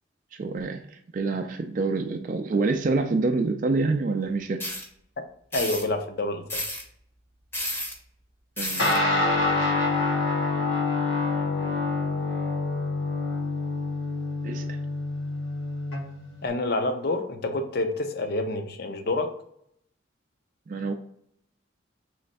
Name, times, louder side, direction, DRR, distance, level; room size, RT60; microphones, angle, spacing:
voice 1, 0.4-4.7 8.6-8.9 14.4-14.8 20.7-20.9, right 3 dB, 45° right, 4 dB, 0.3 m, -27 dB
sound 1, 4.6-4.8 5.5-5.8 6.5-6.8 7.5-7.9 8.6-9.0, left 1 dB, 10° left, 0.7 m, -31 dB
voice 2, 5.5-6.6 16.4-19.3, left 2 dB, 55° left, 7 dB, 0.5 m, -28 dB
Guitar, 8.8-16.5, left 3 dB, 70° left, 0.9 m, -26 dB
3.3 x 3.2 x 4.0 m, 0.69 s
head